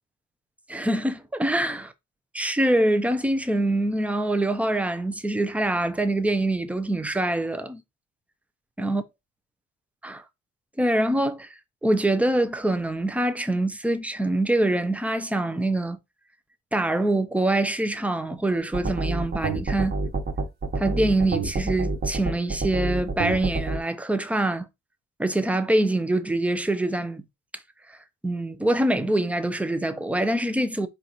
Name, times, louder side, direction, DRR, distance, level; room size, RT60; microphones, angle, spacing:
voice 1, 0.7-1.9 2.3-7.8 8.8-9.0 10.0-10.2 10.8-11.5 11.8-16.0 16.7-19.9 20.8-24.7 25.2-27.2 28.2-30.9, right 1 dB, 5° right, 0.6 m, -24 dB
sound 1, 18.7-23.8, right 3 dB, 30° right, 1.2 m, -27 dB
4.5 x 2.5 x 4.2 m
cardioid pair, 90°, 30 cm